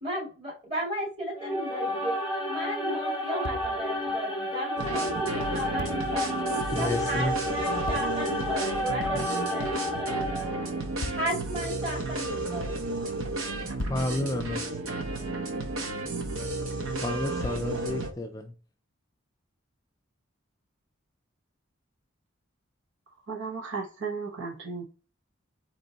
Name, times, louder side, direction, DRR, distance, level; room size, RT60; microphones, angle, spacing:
voice 1, 0.0-2.1 2.5-10.5 11.1-12.9, equal, 30° right, -4 dB, 2.4 m, -35 dB
sound 1, 1.3-10.8, equal, 5° right, 1.1 m, -31 dB
sound 2, 3.4-4.2 5.8-6.3 7.9-8.4 11.0-11.6 13.8-15.2 17.4-18.3, left 2 dB, 75° left, 0.5 m, -40 dB
sound 3, 4.8-18.1, right 2 dB, 90° right, 0.8 m, -33 dB
voice 2, 6.7-7.4 13.9-14.8 16.9-18.5, left 2 dB, 15° left, 4 dB, 0.3 m, -31 dB
voice 3, 23.3-24.8, right 4 dB, 65° right, -1 dB, 1.1 m, -35 dB
4.3 x 3.0 x 3.9 m, 0.36 s
head